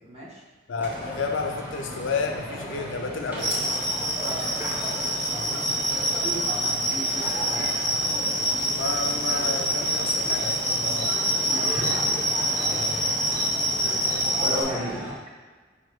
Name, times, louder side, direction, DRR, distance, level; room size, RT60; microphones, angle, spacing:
voice 1, 0.0-0.4 4.1-4.4 6.0-8.0 11.4-12.1 14.4-15.0, equal, 30° right, -5 dB, 0.9 m, -34 dB
voice 2, 0.7-3.6 5.3-6.1 8.7-11.1 12.6-13.1, left 4 dB, 80° left, 3 dB, 0.4 m, -32 dB
sound 1, 0.8-15.2, equal, 10° right, 0.6 m, -36 dB
sound 2, 3.4-14.6, right 1 dB, 65° right, 1.1 m, -26 dB
5.3 x 2.1 x 3.2 m, 1.4 s
head